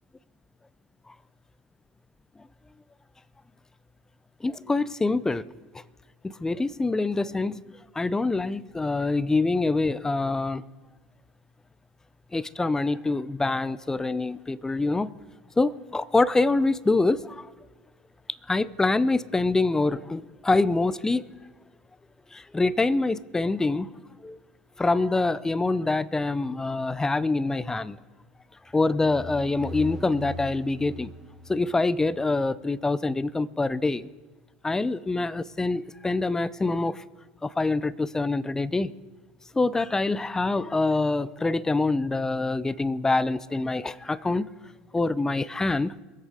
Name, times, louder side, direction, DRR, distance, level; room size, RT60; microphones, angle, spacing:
voice 1, 4.4-5.5 6.2-7.6 8.0-10.6 12.3-15.1 15.6-17.5 18.5-21.2 22.3-23.9 24.2-24.4 24.8-28.0 28.7-31.1 31.5-34.1 34.6-37.0 37.4-38.9 39.5-44.5 44.9-45.9, left 3 dB, 15° left, 0.5 m, -25 dB
sound 1, 28.7-32.4, left 1 dB, 10° right, 1.2 m, -40 dB
22.0 x 8.0 x 5.0 m
hypercardioid pair, 90°, 4 cm